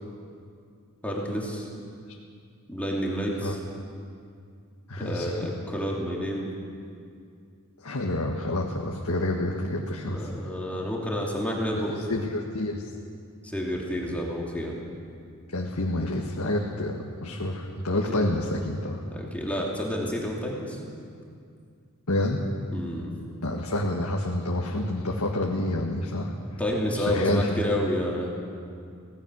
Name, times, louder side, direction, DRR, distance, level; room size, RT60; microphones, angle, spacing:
voice 1, 1.0-1.7 2.7-3.6 5.0-6.5 10.1-11.9 13.4-14.8 17.9-18.3 19.1-20.8 22.7-23.1 26.6-28.3, equal, 5° left, -3 dB, 2.7 m, -29 dB
voice 2, 4.9-5.4 7.8-10.3 11.7-11.8 12.1-12.9 15.5-19.0 22.1-22.4 23.4-26.3 26.9-27.6, left 1 dB, 85° left, -1 dB, 1.7 m, -28 dB
24.5 x 18.0 x 6.3 m, 2.3 s
head